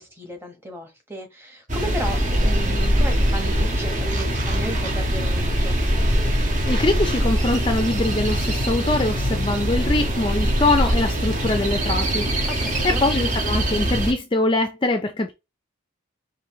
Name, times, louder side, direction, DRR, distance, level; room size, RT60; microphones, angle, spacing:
voice 1, 0.0-5.8 12.5-13.0, equal, 10° right, 1.2 m, -34 dB
sound 1, 1.7-14.1, equal, 40° right, 1.2 m, -22 dB
voice 2, 6.6-12.5 13.0-15.3, left 2 dB, 25° left, 0.5 m, -23 dB
5.4 x 2.5 x 3.1 m
head